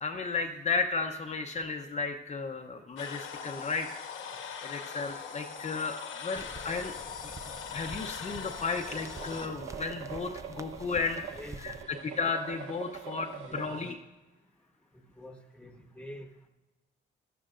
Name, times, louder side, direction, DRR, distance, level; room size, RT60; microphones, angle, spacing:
voice 1, 0.0-4.0 4.6-6.9 7.7-11.2 11.6-11.7 12.0-13.9, left 4 dB, 35° left, 3 dB, 0.7 m, -34 dB
sound 1, 3.0-9.5, left 7 dB, 80° left, 1.2 m, -41 dB
sound 2, 6.3-11.8, right 3 dB, 15° right, 0.4 m, -48 dB
sound 3, 8.8-13.9, right 7 dB, 90° right, 1.0 m, -44 dB
voice 2, 11.4-11.7 13.5-13.8 15.2-16.3, left 1 dB, 5° left, 5 dB, 1.2 m, -46 dB
14.0 x 12.0 x 2.5 m, 1.1 s
cardioid pair, 90°, 20 cm